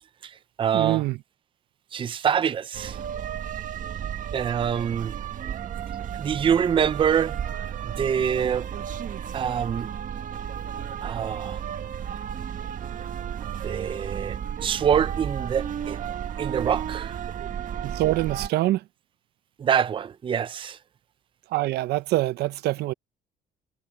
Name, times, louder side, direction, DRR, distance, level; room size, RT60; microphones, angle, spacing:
voice 1, 0.2-1.0 1.9-3.0 4.3-5.1 6.1-7.4 7.8-8.7 9.3-9.9 11.0-11.6 13.6-16.0 16.4-17.2 19.6-20.8, right 8 dB, 30° right, 0.5 m, -25 dB
voice 2, 0.7-1.1 17.8-18.8 21.5-22.9, right 17 dB, 75° right, 0.6 m, -24 dB
sound 1, 2.7-18.5, right 9 dB, 50° right, 1.6 m, -33 dB
cardioid pair, 110°, 17 cm